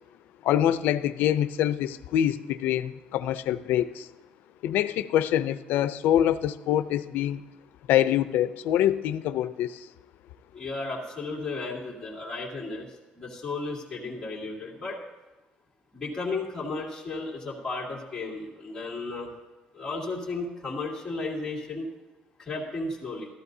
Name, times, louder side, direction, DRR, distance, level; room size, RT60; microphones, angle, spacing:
voice 1, 0.4-4.1 4.6-7.4 7.9-9.9, left 11 dB, 85° left, 13 dB, 0.4 m, -25 dB
voice 2, 10.5-12.9 13.2-15.0 15.9-19.3 19.7-21.9 22.4-23.3, left 3 dB, 15° left, -5 dB, 2.5 m, -34 dB
15.0 x 13.5 x 2.7 m, 1.1 s
cardioid pair, 175°, 3 cm